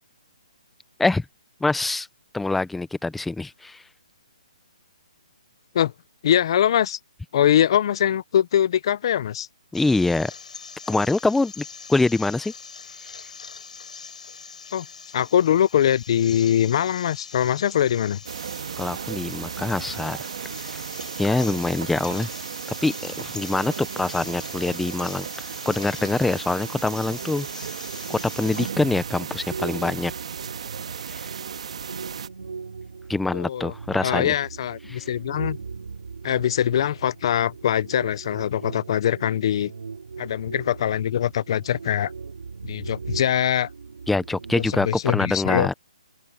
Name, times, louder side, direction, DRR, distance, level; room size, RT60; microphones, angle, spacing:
voice 1, 1.6-2.1 2.3-3.8 9.7-10.3 10.9-12.5 18.8-20.2 20.7-20.8 21.2-22.3 22.8-25.3 25.7-27.5 28.1-30.1 31.1-31.3 33.1-34.3 34.9-35.0 44.1-45.7, left 3 dB, 5° left, 0.7 m, -24 dB
voice 2, 6.2-7.0 7.3-9.5 14.7-14.9 15.1-18.2 33.3-33.7 34.0-35.6 36.2-39.7 40.2-42.1 42.6-43.7 44.6-45.7, left 10 dB, 45° left, 0.7 m, -22 dB
sound 1, 9.7-28.7, left 5 dB, 80° left, 7.9 m, -42 dB
sound 2, 18.2-32.3, right 7 dB, 60° right, 1.8 m, -35 dB
sound 3, 27.8-44.9, right 5 dB, 85° right, 5.1 m, -39 dB
open air
hypercardioid pair, 160°, 4 cm